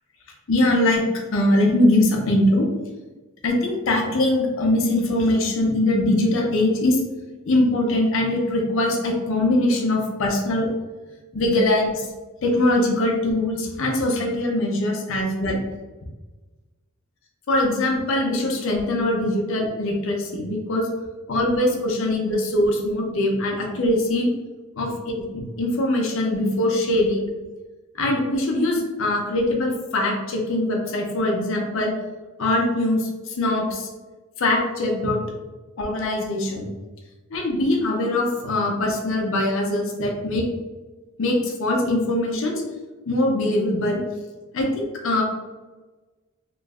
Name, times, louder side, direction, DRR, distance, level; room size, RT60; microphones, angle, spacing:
voice 1, 0.5-1.0 1.3-2.7 3.4-7.0 7.5-10.7 11.3-12.1 12.4-15.6 17.5-20.9 21.3-24.3 24.8-27.2 28.0-31.9 32.4-33.1 33.4-33.9 34.4-35.2 35.8-36.7 37.3-40.4 41.2-42.6 43.1-44.0 44.5-45.2, left 1 dB, 60° left, 0 dB, 0.6 m, -22 dB
3.0 x 2.0 x 3.5 m, 1.2 s
head